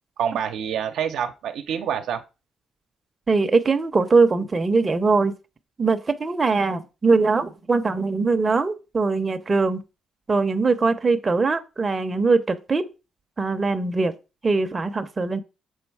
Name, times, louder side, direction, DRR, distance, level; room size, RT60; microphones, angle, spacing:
voice 1, 0.2-2.2, right 8 dB, 80° right, 0.8 m, -27 dB
voice 2, 3.3-5.4 5.8-9.8 10.3-12.9 13.4-14.1 14.4-15.4, right 4 dB, 30° right, 0.8 m, -21 dB
6.3 x 4.0 x 4.8 m
cardioid pair, 90°, 0 cm